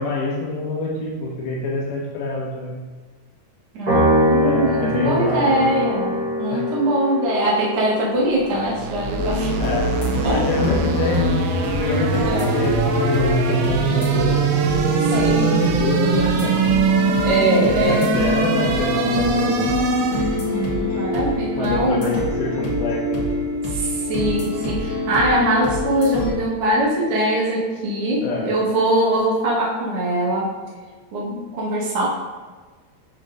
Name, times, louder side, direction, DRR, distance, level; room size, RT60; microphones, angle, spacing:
voice 1, 0.0-2.8 4.4-5.6 6.1-6.6 9.6-9.9 10.3-11.3 11.7-12.3 12.5-14.4 15.1-16.5 17.0-17.1 17.6-19.8 21.5-23.2 28.2-28.5, left 2 dB, 85° left, -4 dB, 1.9 m, -25 dB
voice 2, 3.7-9.6 10.2-10.4 11.8-12.6 15.0-15.6 17.2-18.1 20.1-22.1 23.7-30.5 31.1-32.1, right 1 dB, 65° right, -7 dB, 1.6 m, -22 dB
Piano, 3.9-10.4, equal, 40° right, 1.9 m, -24 dB
sound 1, 8.3-20.5, right 5 dB, 90° right, 2.1 m, -22 dB
sound 2, 9.2-26.3, left 2 dB, 70° left, 1.5 m, -25 dB
8.5 x 5.5 x 2.6 m, 1.4 s
omnidirectional pair, 5.0 m